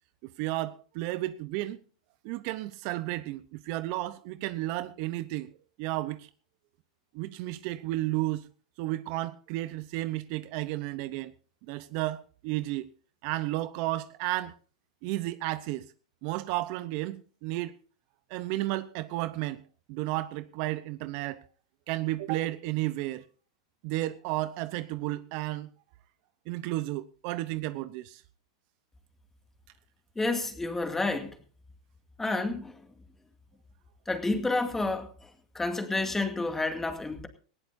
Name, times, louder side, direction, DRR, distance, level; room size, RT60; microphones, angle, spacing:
voice 1, 0.2-1.8 2.2-5.5 5.8-6.3 7.1-8.5 8.8-11.3 11.7-12.9 13.2-14.6 15.0-15.9 16.2-17.8 18.3-19.6 19.9-21.4 21.9-23.2 23.8-25.7 26.5-28.2, right 17 dB, 55° right, 0.8 m, -32 dB
voice 2, 30.2-31.4 32.2-32.8 34.1-37.3, left 2 dB, 10° left, 2.2 m, -30 dB
19.0 x 16.0 x 2.7 m
hypercardioid pair, 110°, 3 cm